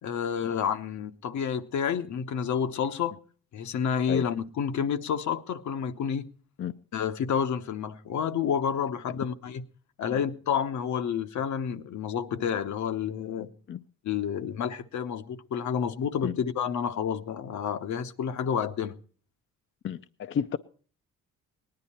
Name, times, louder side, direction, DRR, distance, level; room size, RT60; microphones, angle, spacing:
voice 1, 0.0-3.2 3.5-6.3 6.9-9.6 10.0-13.5 14.0-18.9, left 7 dB, 70° left, 1.0 m, -29 dB
voice 2, 19.8-20.6, left 8 dB, 40° left, 0.6 m, -31 dB
18.5 x 10.5 x 4.3 m
cardioid pair, 90°, 30 cm